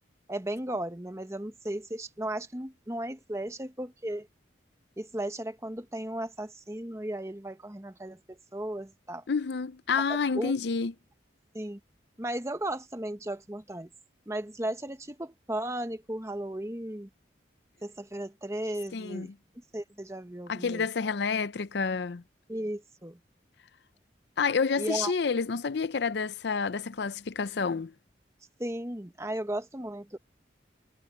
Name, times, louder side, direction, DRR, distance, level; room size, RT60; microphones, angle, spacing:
voice 1, 0.3-4.3 5.0-9.2 9.9-10.5 11.5-11.8 12.2-13.9 14.3-17.1 17.8-19.3 19.7-20.9 22.5-23.2 24.8-25.1 28.6-30.2, right 1 dB, 15° right, 1.1 m, -35 dB
voice 2, 9.3-10.9 18.9-19.3 20.5-22.2 24.4-27.9, left 5 dB, 65° left, 0.5 m, -29 dB
head